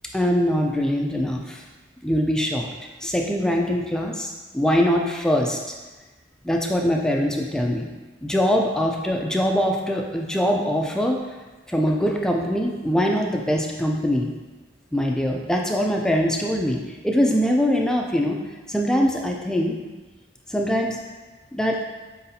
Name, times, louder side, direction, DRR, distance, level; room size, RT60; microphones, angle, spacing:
voice 1, 0.1-1.6 2.0-2.7 3.0-5.7 6.4-7.9 8.2-11.2 11.7-14.3 14.9-16.8 17.0-18.4 18.7-19.7 20.5-21.0 21.5-21.8, equal, 5° left, 0 dB, 0.3 m, -22 dB
4.7 x 4.1 x 2.7 m, 1.2 s
head